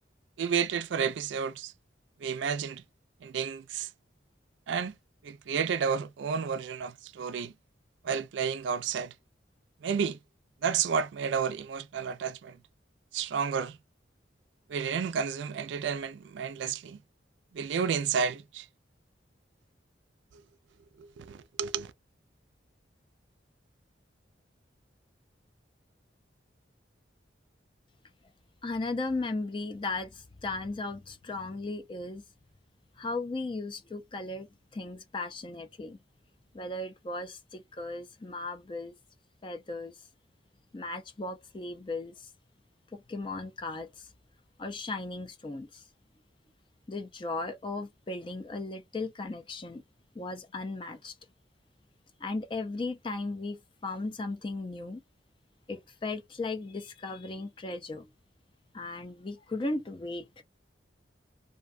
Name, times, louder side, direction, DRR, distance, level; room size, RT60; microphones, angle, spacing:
voice 1, 0.4-1.7 2.2-2.8 3.2-3.9 4.7-5.0 5.2-7.5 8.0-9.1 9.8-10.2 10.6-12.6 13.1-13.8 14.7-17.0 17.5-18.7 21.0-21.9, right 6 dB, 75° right, 0.4 m, -31 dB
voice 2, 28.6-32.2 33.0-36.0 36.5-39.0 39.4-40.1 40.7-42.3 42.9-44.1 44.6-45.8 46.9-49.8 50.1-51.2 52.2-55.0 55.7-58.1 58.7-60.4, left 2 dB, 25° left, 0.4 m, -36 dB
2.6 x 2.1 x 2.4 m
head